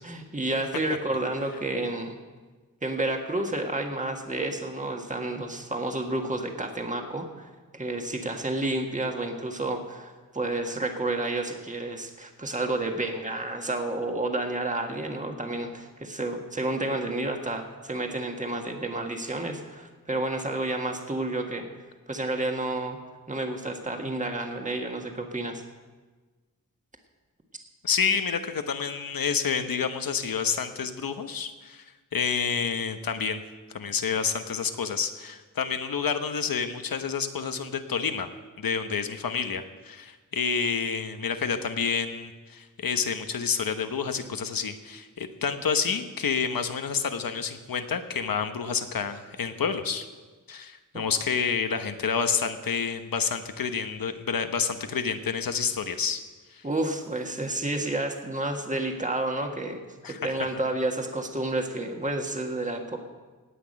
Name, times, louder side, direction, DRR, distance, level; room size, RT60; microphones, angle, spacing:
voice 1, 0.0-2.2 2.8-21.7 22.1-23.0 23.3-25.6 50.9-51.1 56.6-59.8 60.1-63.0, right 2 dB, 20° right, 3 dB, 1.6 m, -30 dB
voice 2, 27.8-31.8 32.1-33.4 33.7-38.3 38.6-50.1 50.5-56.2 56.5-56.6 60.0-60.3, left 6 dB, 80° left, 8 dB, 1.1 m, -29 dB
18.0 x 6.1 x 8.8 m, 1.3 s
wide cardioid pair, 120°, 34 cm